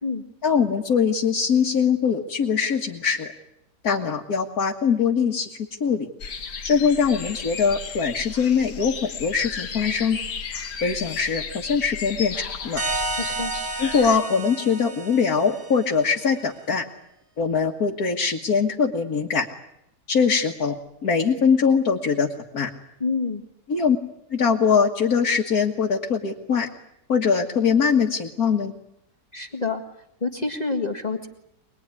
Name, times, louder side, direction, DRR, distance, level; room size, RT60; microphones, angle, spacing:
voice 1, 0.4-3.3 3.8-5.5 5.8-6.1 6.6-10.2 10.8-12.8 13.8-16.9 17.4-19.5 20.1-20.8 21.0-22.3 22.5-22.7 23.7-24.0 24.3-26.7 27.1-28.7, left 6 dB, 65° left, 0 dB, 2.2 m, -22 dB
sound 1, 6.2-14.2, left 6 dB, 85° left, 2.1 m, -34 dB
sound 2, 12.8-16.2, right 2 dB, 75° right, 4.6 m, -31 dB
voice 2, 23.0-23.4 29.3-29.8 30.2-31.3, left 4 dB, 25° left, 4 dB, 1.8 m, -27 dB
25.0 x 21.0 x 9.8 m, 0.81 s
omnidirectional pair, 1.7 m